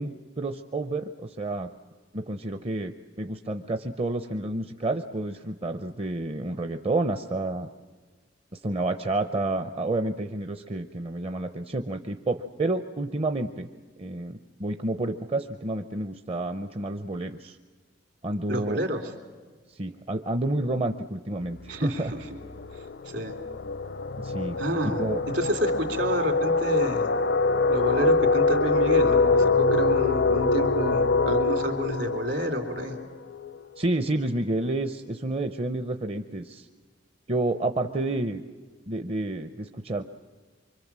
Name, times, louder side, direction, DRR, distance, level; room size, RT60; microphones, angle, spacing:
voice 1, 0.0-1.7 2.1-7.7 8.5-13.7 14.0-17.6 18.2-18.8 19.7-22.1 24.2-24.6 24.8-25.2 33.8-36.7 37.3-38.4 38.9-40.0, right 2 dB, 35° right, 8 dB, 0.7 m, -29 dB
voice 2, 18.5-19.1 21.7-22.2 23.0-23.3 24.6-25.0 25.3-27.1 27.7-33.0, equal, 65° right, 7 dB, 3.3 m, -29 dB
sound 1, 21.5-21.7 22.1-33.6, left 3 dB, 65° left, 0.6 m, -24 dB
25.0 x 24.5 x 7.4 m, 1.5 s
head